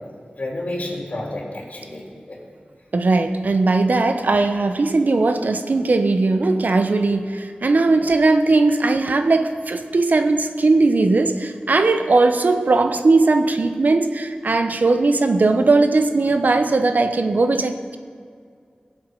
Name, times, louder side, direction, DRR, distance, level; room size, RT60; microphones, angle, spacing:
voice 1, 0.4-2.4, left 1 dB, 55° left, -1 dB, 3.6 m, -30 dB
voice 2, 2.9-18.0, right 3 dB, 70° right, 8 dB, 1.0 m, -18 dB
21.5 x 7.9 x 5.5 m, 2.2 s
wide cardioid pair, 65°, 3 cm